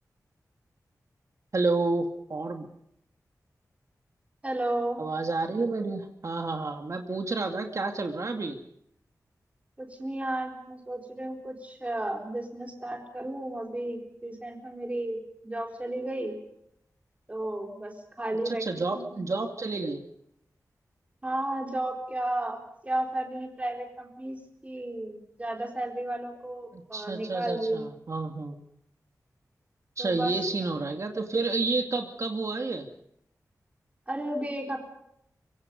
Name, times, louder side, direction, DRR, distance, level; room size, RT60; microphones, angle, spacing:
voice 1, 1.5-2.7 5.0-8.6 18.5-20.0 26.7-28.6 30.0-32.9, right 3 dB, 55° right, 4 dB, 2.4 m, -30 dB
voice 2, 4.4-5.0 9.8-16.3 17.3-19.1 21.2-22.6 22.8-27.9 30.0-30.3 34.1-34.8, right 1 dB, 20° right, 2 dB, 4.1 m, -33 dB
25.0 x 24.0 x 5.4 m, 0.75 s
wide cardioid pair, 110°, 6 cm